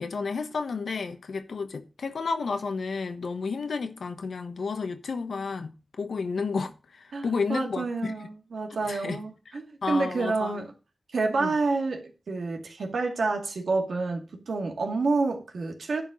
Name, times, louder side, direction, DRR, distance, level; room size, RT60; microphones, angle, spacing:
voice 1, 0.0-8.1 8.7-9.2 9.5-10.7 11.4-11.5, left 4 dB, 80° left, 1.1 m, -32 dB
voice 2, 7.1-10.7 11.1-14.2 14.5-16.0, right 3 dB, 85° right, 2.1 m, -28 dB
11.0 x 4.3 x 6.2 m
wide cardioid pair, 95°, 0 cm